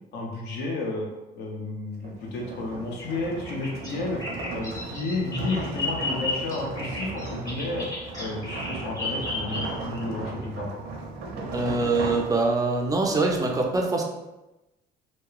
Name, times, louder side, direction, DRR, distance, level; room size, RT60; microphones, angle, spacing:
voice 1, 0.1-1.1 1.4-4.2 4.5-7.9 8.2-10.7, left 2 dB, 80° left, 0 dB, 0.6 m, -32 dB
sound 1, 2.0-12.9, right 3 dB, 75° right, 0.5 m, -36 dB
Bird vocalization bird call bird song, 3.4-10.0, left 2 dB, 20° left, 0.8 m, -33 dB
voice 2, 11.5-14.0, right 3 dB, 20° right, 1 dB, 0.3 m, -24 dB
2.8 x 2.0 x 2.3 m, 1.0 s
cardioid pair, 110°, 17 cm